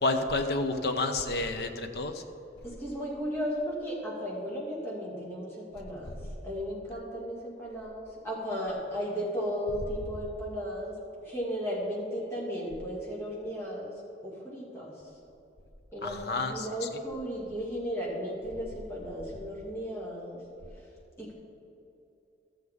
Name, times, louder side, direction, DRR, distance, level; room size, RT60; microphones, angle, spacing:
voice 1, 0.0-2.2 16.0-16.7, left 2 dB, 60° left, 6 dB, 0.7 m, -29 dB
voice 2, 2.6-6.1 6.4-11.0 11.2-14.9 15.9-20.4 21.2-21.3, equal, 15° left, -6 dB, 2.3 m, -35 dB
13.0 x 7.8 x 3.6 m, 2.8 s
head